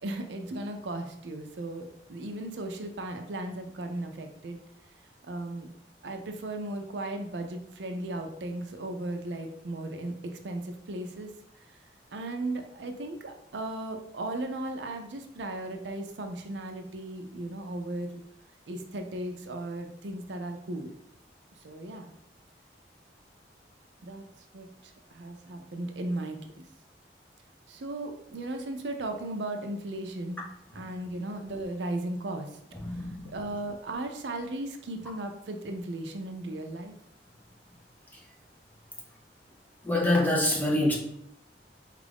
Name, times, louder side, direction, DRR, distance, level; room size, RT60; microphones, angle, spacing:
voice 1, 0.0-4.6 5.3-5.7 6.0-10.1 10.4-11.3 12.1-18.2 18.7-20.9 21.6-22.1 24.0-24.2 24.5-26.7 27.7-30.4 30.7-32.5 33.0-36.9, right 1 dB, 85° right, 5 dB, 0.5 m, -36 dB
voice 2, 32.8-33.3 39.8-41.0, left 1 dB, 10° left, -2 dB, 0.7 m, -25 dB
4.5 x 2.4 x 3.4 m, 0.72 s
head